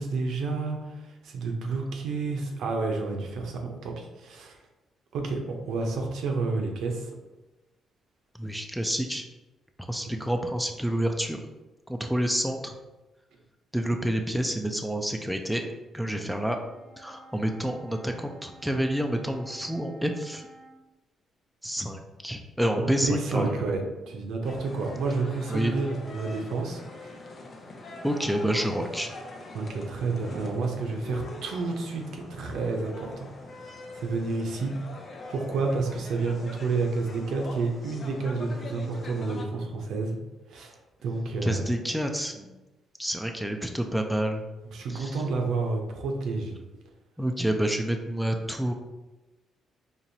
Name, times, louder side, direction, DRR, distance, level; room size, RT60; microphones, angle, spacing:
voice 1, 0.0-4.6 5.1-7.1 10.0-10.2 22.8-27.1 29.5-33.3 33.9-34.7 35.3-40.2 40.5-40.7 41.0-41.6 44.7-46.6, right 3 dB, 75° right, 2 dB, 0.7 m, -30 dB
voice 2, 8.4-9.2 9.9-11.4 11.9-12.7 13.7-15.6 15.9-16.6 17.0-20.5 21.6-23.5 25.5-25.7 28.0-29.1 41.4-42.5 43.0-44.4 44.9-45.2 47.2-48.7, right 1 dB, ahead, 3 dB, 0.4 m, -28 dB
Wind instrument woodwind instrument, 16.3-20.8, right 1 dB, 65° left, 1.4 m, -52 dB
sound 1, 24.4-39.4, left 2 dB, 45° left, 0.6 m, -43 dB
4.4 x 2.9 x 2.7 m, 1.1 s
cardioid pair, 90°, 0 cm